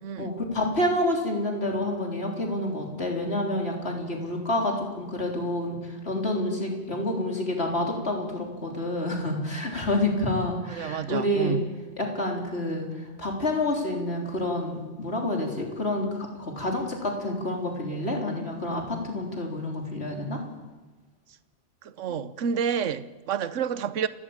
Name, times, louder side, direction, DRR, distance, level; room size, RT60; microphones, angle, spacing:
voice 1, 0.2-11.6 12.0-20.4 22.1-22.2, left 1 dB, 55° left, 4.2 m, -28 dB
voice 2, 10.7-11.7 21.8-24.1, right 7 dB, 80° right, 1.2 m, -29 dB
30.0 x 13.5 x 8.9 m
omnidirectional pair, 1.3 m